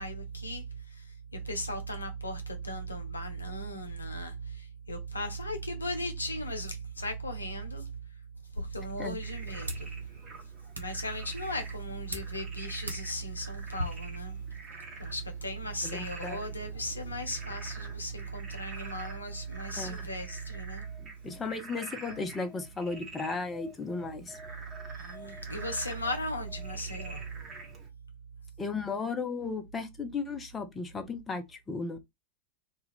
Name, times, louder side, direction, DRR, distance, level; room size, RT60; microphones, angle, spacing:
voice 1, 0.0-8.0 8.6-9.9 10.8-14.5 15.0-20.8 24.9-27.4, right 1 dB, 80° left, 0.6 m, -36 dB
sound 1, 8.3-13.8, equal, 80° right, 0.6 m, -44 dB
Frog, 9.2-27.9, right 3 dB, 25° right, 1.0 m, -48 dB
voice 2, 15.8-16.4 19.8-20.0 21.0-24.4 28.6-32.0, left 4 dB, 15° left, 0.5 m, -35 dB
2.3 x 2.3 x 3.4 m
figure-of-eight pair, 90°, 0 cm